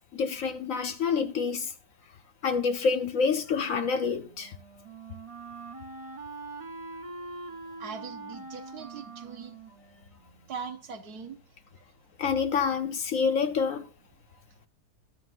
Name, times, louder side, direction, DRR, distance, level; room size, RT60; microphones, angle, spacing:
voice 1, 0.1-1.7 2.4-4.6 12.2-13.9, left 5 dB, 60° left, 1.0 m, -27 dB
Wind instrument woodwind instrument, 3.9-10.8, right 3 dB, 45° right, 0.4 m, -44 dB
voice 2, 7.8-9.5 10.5-11.4, right 5 dB, 65° right, 1.5 m, -40 dB
22.5 x 7.7 x 2.5 m
omnidirectional pair, 1.8 m